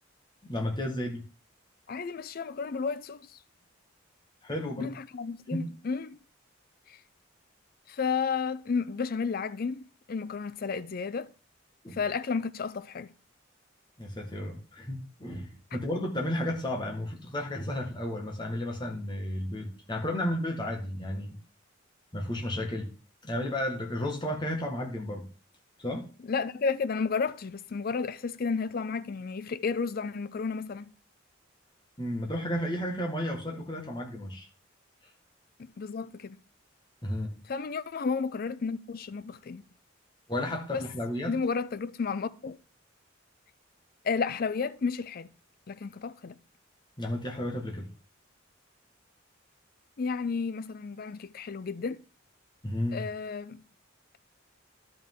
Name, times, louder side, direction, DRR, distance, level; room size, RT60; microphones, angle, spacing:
voice 1, 0.4-1.2 4.4-4.9 5.5-5.7 11.8-12.0 14.0-21.4 22.1-22.9 23.2-25.3 25.8-26.1 32.0-34.5 37.0-37.3 40.3-41.4 47.0-47.9 52.6-53.0, left 1 dB, 25° left, 1.7 m, -33 dB
voice 2, 1.9-3.3 4.8-6.2 6.9-7.0 7.9-11.3 11.9-13.1 26.2-30.9 35.6-36.4 37.5-39.6 40.7-40.8 41.3-42.6 44.0-45.3 45.7-46.4 50.0-52.0 52.9-53.6, left 5 dB, 50° left, 0.4 m, -32 dB
12.0 x 5.5 x 3.7 m
head